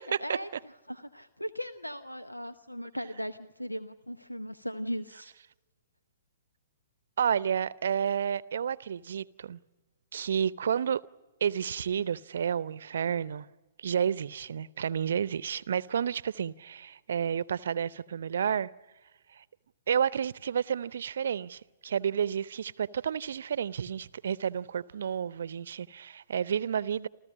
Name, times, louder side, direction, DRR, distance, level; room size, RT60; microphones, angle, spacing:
voice 1, 0.1-5.3, equal, 90° left, 0.8 m, -38 dB
voice 2, 7.2-9.6 10.1-11.0 11.4-13.5 13.8-18.7 19.4-19.5 19.9-27.1, right 8 dB, 60° right, 0.7 m, -30 dB
28.5 x 14.5 x 9.8 m
figure-of-eight pair, 115°, 0 cm